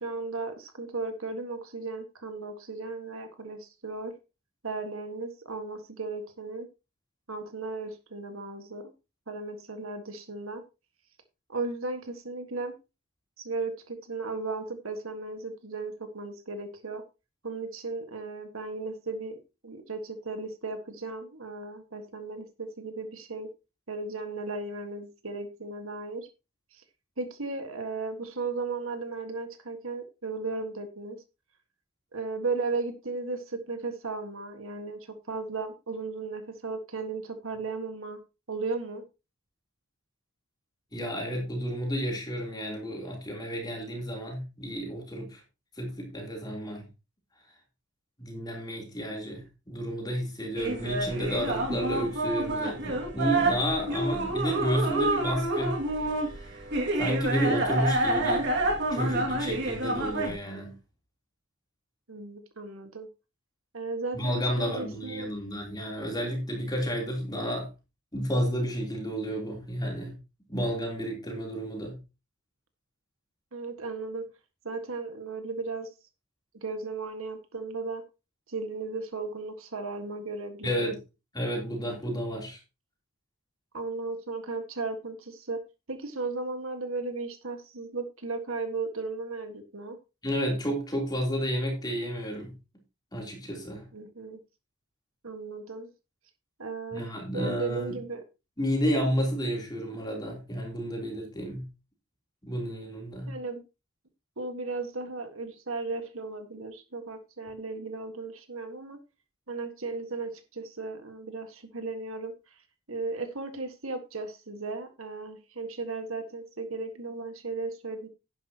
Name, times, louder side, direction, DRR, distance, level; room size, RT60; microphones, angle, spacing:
voice 1, 0.0-4.1 4.6-6.7 7.3-8.9 9.3-10.6 11.5-12.7 13.4-17.0 17.4-19.4 19.6-23.5 23.9-26.3 26.7-26.8 27.2-31.2 32.1-38.2 38.5-39.0 62.1-63.1 63.7-65.3 73.5-74.3 74.7-75.9 76.6-78.0 78.5-81.0 83.7-85.6 85.9-90.0 93.9-94.4 95.2-95.9 96.6-98.2 103.3-103.6 104.4-109.0 109.5-112.3 112.9-118.1, right 3 dB, 70° right, 1.7 m, -35 dB
voice 2, 40.9-45.4 45.8-46.9 48.2-55.8 56.0-56.6 57.0-58.5 58.9-60.7 64.1-67.7 68.1-70.2 70.5-72.0 80.6-81.0 81.3-82.6 90.2-92.5 93.1-93.9 96.9-98.0 98.6-101.6 102.4-103.3, equal, 20° left, 3.4 m, -31 dB
sound 1, 50.6-60.4, right 2 dB, 55° right, 2.3 m, -28 dB
11.0 x 10.5 x 2.9 m
head